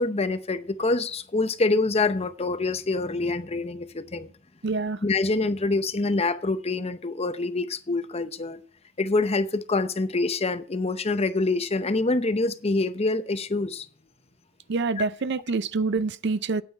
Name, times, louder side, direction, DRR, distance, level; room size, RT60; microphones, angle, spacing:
voice 1, 0.0-4.3 5.0-8.6 9.0-13.9, left 3 dB, 30° left, 0.7 m, -26 dB
voice 2, 4.6-5.0 14.7-16.6, right 4 dB, 55° right, 0.5 m, -26 dB
9.4 x 9.1 x 4.4 m
head